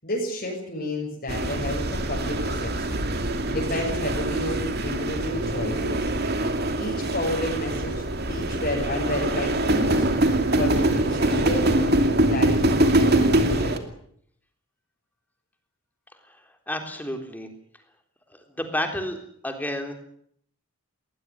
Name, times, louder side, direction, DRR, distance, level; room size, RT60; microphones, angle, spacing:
voice 1, 0.0-3.0 3.5-6.1 6.8-10.1 10.5-12.0 12.3-13.8, left 1 dB, 45° left, -2 dB, 7.1 m, -31 dB
sound 1, 1.3-13.8, right 1 dB, 45° right, 2.7 m, -24 dB
voice 2, 16.7-17.5 18.3-19.2 19.4-19.9, left 1 dB, 10° left, 5 dB, 3.7 m, -30 dB
20.5 x 20.5 x 9.8 m, 0.68 s
head